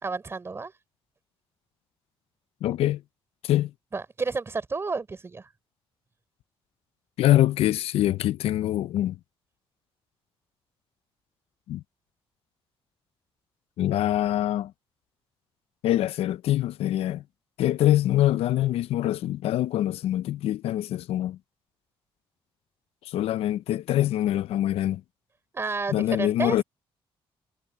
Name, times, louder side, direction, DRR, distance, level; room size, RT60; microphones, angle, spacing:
voice 1, 0.0-0.7 3.9-5.5 25.5-26.6, right 4 dB, 25° right, 3.5 m, -31 dB
voice 2, 2.6-3.0 3.4-3.7 7.2-9.2 11.7-11.8 13.8-14.7 15.8-17.2 17.6-21.4 23.1-25.0 25.9-26.6, left 13 dB, 80° left, 0.5 m, -24 dB
cardioid pair, 135°, 10 cm